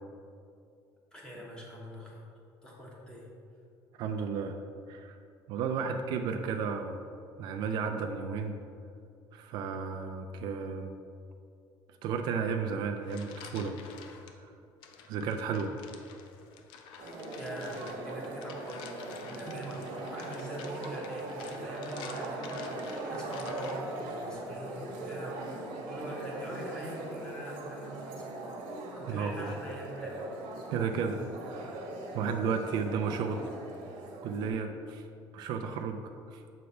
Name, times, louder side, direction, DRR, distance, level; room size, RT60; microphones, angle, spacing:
voice 1, 1.1-2.2 2.6-3.3 5.9-6.0 17.3-28.6 29.0-30.2, equal, 10° left, -4 dB, 1.1 m, -44 dB
voice 2, 4.0-4.6 4.9-5.2 5.5-7.0 7.4-8.6 9.3-10.9 12.0-13.8 14.4-14.5 15.1-15.7 29.1-29.5 30.7-33.5 34.2-35.1 35.3-36.4, right 5 dB, 60° right, 5 dB, 0.4 m, -33 dB
sound 1, 12.8-14.3 14.8-24.0, left 6 dB, 75° left, 0.6 m, -49 dB
sound 2, 17.0-34.5, right 2 dB, 85° right, 1.1 m, -40 dB
6.7 x 3.3 x 5.4 m, 2.5 s
cardioid pair, 170°, 8 cm